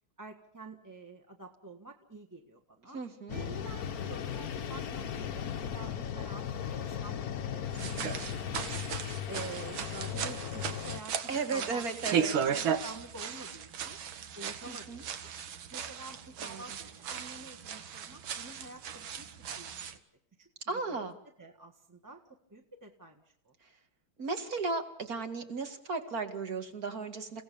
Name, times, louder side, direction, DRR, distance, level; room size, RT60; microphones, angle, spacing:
voice 1, 0.2-3.0 3.3-8.8 9.3-11.2 11.5-11.8 12.3-14.0 14.3-15.3 15.7-19.3 19.6-20.0 20.4-20.5 20.9-21.1 21.4-22.2 22.5-23.5, right 2 dB, 10° right, 1 dB, 1.4 m, -48 dB
voice 2, 2.9-3.4 11.3-12.4 14.7-15.0 16.4-16.8 20.7-21.1 24.2-27.4, right 4 dB, 45° right, 6 dB, 2.5 m, -35 dB
sound 1, 3.3-11.0, left 8 dB, 55° left, 1.3 m, -37 dB
sound 2, 7.7-20.0, right 7 dB, 75° right, 2.1 m, -36 dB
29.0 x 17.0 x 7.0 m, 0.73 s
omnidirectional pair, 2.2 m